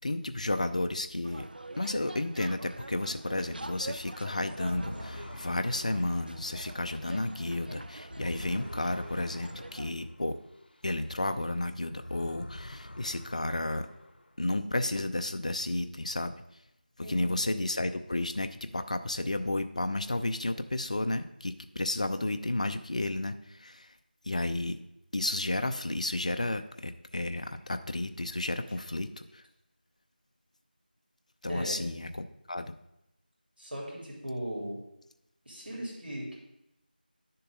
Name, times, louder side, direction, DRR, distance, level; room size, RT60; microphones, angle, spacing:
voice 1, 0.0-1.4 1.8-10.4 10.8-13.9 14.4-16.3 17.1-23.9 24.3-24.8 25.1-29.4 31.4-32.7, left 2 dB, 45° left, 9 dB, 0.6 m, -32 dB
sound 1, 1.2-9.9, right 2 dB, 65° right, 0.5 m, -45 dB
sound 2, 4.6-11.5 11.8-14.5, left 1 dB, 75° left, 0.8 m, -47 dB
voice 2, 17.0-17.3 27.4-27.5 31.5-31.8 33.6-34.8 35.4-36.3, equal, 90° right, -3 dB, 3.4 m, -38 dB
10.5 x 6.7 x 3.8 m, 0.85 s
figure-of-eight pair, 175°, 5 cm